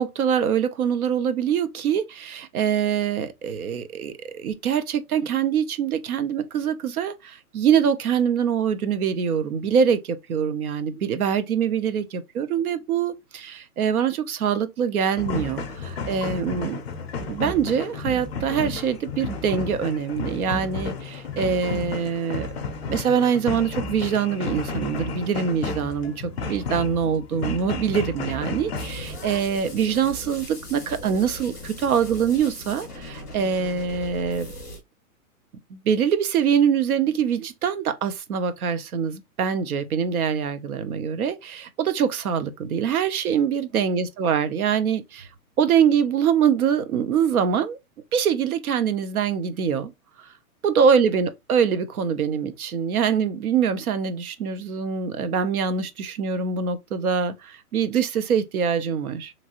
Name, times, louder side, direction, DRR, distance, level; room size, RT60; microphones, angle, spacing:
voice 1, 0.0-16.8 17.3-22.5 22.9-26.1 26.5-34.5 35.7-45.3 45.6-47.8 48.1-49.9 50.6-59.3, right 7 dB, 70° right, 0.7 m, -24 dB
sound 1, 15.2-29.4, left 4 dB, 45° left, 0.5 m, -32 dB
sound 2, 28.7-34.8, left 1 dB, 5° right, 0.6 m, -39 dB
3.0 x 2.5 x 2.8 m
hypercardioid pair, 175°, 45 cm